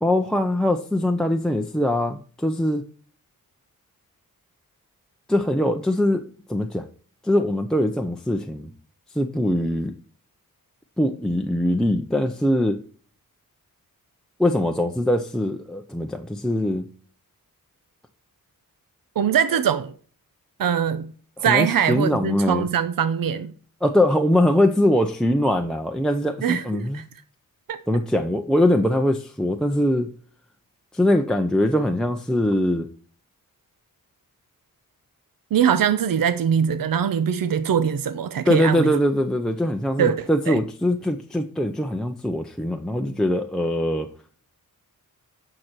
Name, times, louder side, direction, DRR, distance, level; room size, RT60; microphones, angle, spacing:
voice 1, 0.0-2.8 5.3-6.9 7.2-8.7 9.1-10.0 11.0-12.8 14.4-16.9 21.4-22.7 23.8-27.0 27.9-30.1 30.9-32.9 38.4-44.1, left 1 dB, ahead, 0.6 m, -22 dB
voice 2, 19.2-19.9 20.6-21.1 21.4-23.5 26.4-26.6 26.9-27.0 27.7-27.8 35.5-38.9 40.0-40.6, right 8 dB, 70° right, 0.7 m, -22 dB
9.3 x 6.0 x 4.4 m
wide cardioid pair, 110°, 35 cm